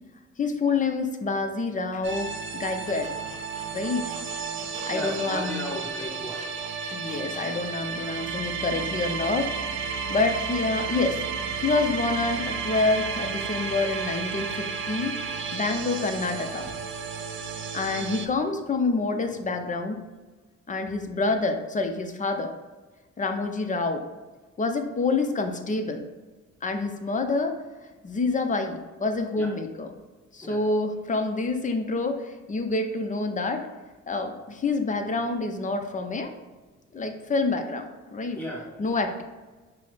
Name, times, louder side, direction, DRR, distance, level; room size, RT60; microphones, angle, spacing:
voice 1, 0.4-3.1 3.7-4.0 4.9-5.6 6.9-9.6 9.9-11.2 11.6-15.1 15.5-16.7 17.7-20.0 20.7-22.5 23.2-24.0 24.6-26.0 26.6-27.5 28.0-29.9 30.3-33.7 34.1-36.3 36.9-38.4 38.8-39.2, left 3 dB, 25° left, 6 dB, 0.5 m, -27 dB
sound 1, 2.0-18.3, right 5 dB, 40° right, 0.4 m, -32 dB
Squeak, 2.8-7.9, right 2 dB, 25° right, 0.8 m, -45 dB
voice 2, 4.9-6.4 16.6-16.7 29.4-29.5 30.4-30.6 38.3-38.8, equal, 5° left, -4 dB, 1.3 m, -35 dB
5.5 x 2.0 x 3.3 m, 1.3 s
cardioid pair, 90°, 30 cm